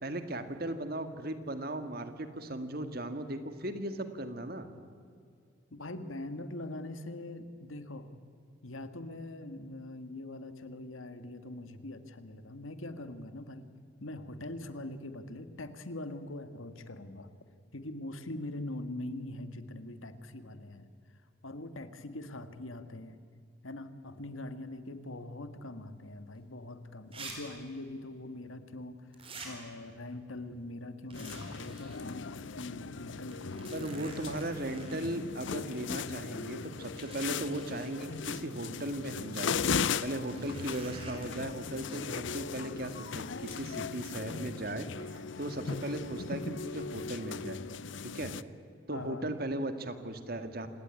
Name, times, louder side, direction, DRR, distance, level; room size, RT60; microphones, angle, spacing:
voice 1, 0.0-4.7 33.7-39.5 40.0-44.9 45.1-47.6 48.0-48.3 48.9-50.7, right 1 dB, 50° right, 9 dB, 1.9 m, -37 dB
voice 2, 5.7-8.1 8.6-13.7 14.0-17.4 17.7-20.9 21.4-23.2 23.6-34.3 48.9-49.2, left 1 dB, 85° left, 10 dB, 1.8 m, -42 dB
sound 1, 26.3-26.4 27.1-27.3 27.6-27.7 29.1-29.5 31.1-32.0 32.4-32.5 33.3-35.0 36.2-36.3 37.0-37.9 40.2-41.3, right 3 dB, 30° right, 4.6 m, -48 dB
sound 2, 31.1-48.4, left 5 dB, 65° left, 0.7 m, -38 dB
27.5 x 18.0 x 9.7 m, 2.3 s
head